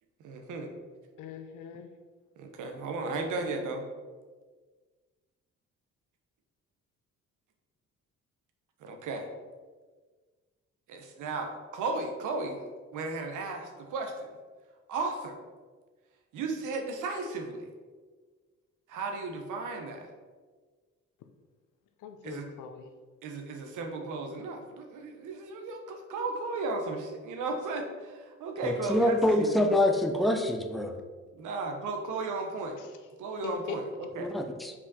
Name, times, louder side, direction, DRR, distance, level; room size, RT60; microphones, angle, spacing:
voice 1, 0.2-0.7 2.4-3.8 8.8-9.3 10.9-12.6 12.9-14.3 14.9-15.4 16.3-17.7 18.9-20.1 22.2-22.5 23.2-29.5 31.4-32.8 33.2-34.4, right 3 dB, 85° right, 4 dB, 1.1 m, -35 dB
voice 2, 1.2-1.9 3.1-3.2 22.0-22.9 33.4-33.8, left 6 dB, 85° left, 7 dB, 0.8 m, -41 dB
voice 3, 28.6-30.9 34.2-34.7, left 1 dB, ahead, 4 dB, 0.7 m, -26 dB
5.7 x 4.8 x 4.2 m, 1.4 s
cardioid pair, 90°, 30 cm